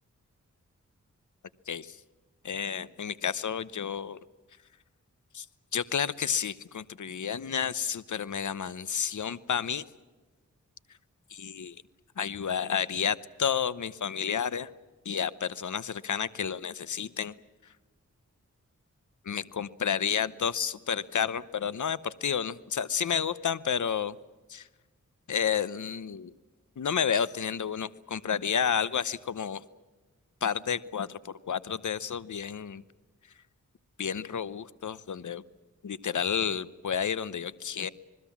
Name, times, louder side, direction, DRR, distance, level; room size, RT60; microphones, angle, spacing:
voice 1, 1.7-2.0 2.4-4.2 5.3-5.5 5.7-9.8 11.3-11.8 12.2-14.7 15.0-17.3 19.3-24.2 24.5-24.7 25.3-26.3 26.8-29.6 30.4-32.8 34.0-35.4 35.8-37.9, left 7 dB, 70° left, 17 dB, 0.9 m, -31 dB
27.0 x 21.0 x 7.3 m, 1.2 s
cardioid pair, 60°, 31 cm